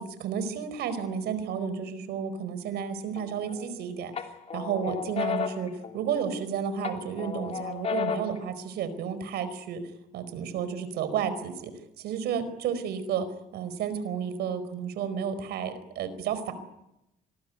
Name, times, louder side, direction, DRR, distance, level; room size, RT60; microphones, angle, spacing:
voice 1, 0.0-4.2 4.5-9.8 10.1-11.7 12.0-13.3 13.5-16.5, right 7 dB, 75° right, 12 dB, 4.7 m, -32 dB
sound 1, 3.2-3.7 4.2-6.4 6.8-8.4, left 7 dB, 40° left, 3.1 m, -33 dB
26.0 x 20.5 x 9.3 m, 0.87 s
cardioid pair, 110°, 17 cm